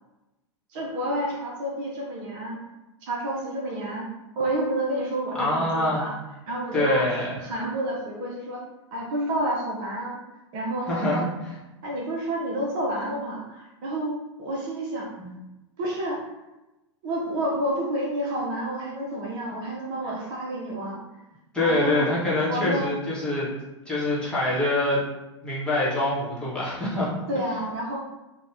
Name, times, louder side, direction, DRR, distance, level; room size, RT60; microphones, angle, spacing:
voice 1, 0.7-2.6 3.0-4.1 4.4-6.1 6.5-7.1 7.4-8.6 8.9-10.2 10.5-11.2 11.8-15.1 15.8-16.2 17.0-21.0 21.6-22.1 22.5-22.9 27.3-28.0, right 1 dB, 45° right, -2 dB, 0.7 m, -29 dB
voice 2, 5.4-6.1 6.7-7.3 10.9-11.3 15.2-15.3 21.5-23.5 23.9-25.0 25.4-27.1, left 2 dB, 5° left, -8 dB, 1.1 m, -25 dB
2.7 x 2.2 x 3.2 m, 0.99 s
figure-of-eight pair, 95°, 16 cm